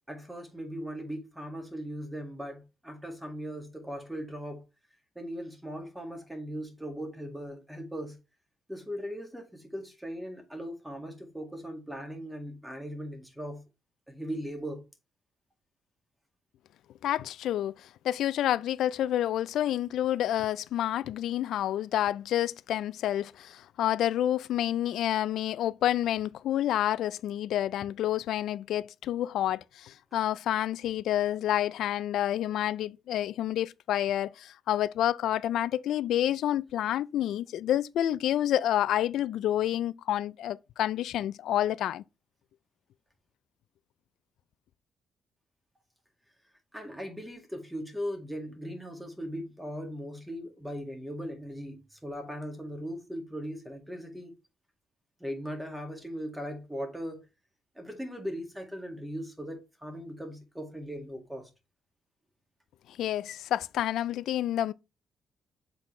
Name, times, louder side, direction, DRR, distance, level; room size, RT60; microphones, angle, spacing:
voice 1, 0.1-4.6 5.2-8.2 8.7-13.6 14.1-14.9 46.7-54.4 55.2-57.3 57.8-61.5, equal, 5° right, 1.9 m, -39 dB
voice 2, 17.0-42.0 63.0-64.7, left 12 dB, 80° left, 0.3 m, -29 dB
7.4 x 4.0 x 3.1 m
cardioid pair, 90°, 0 cm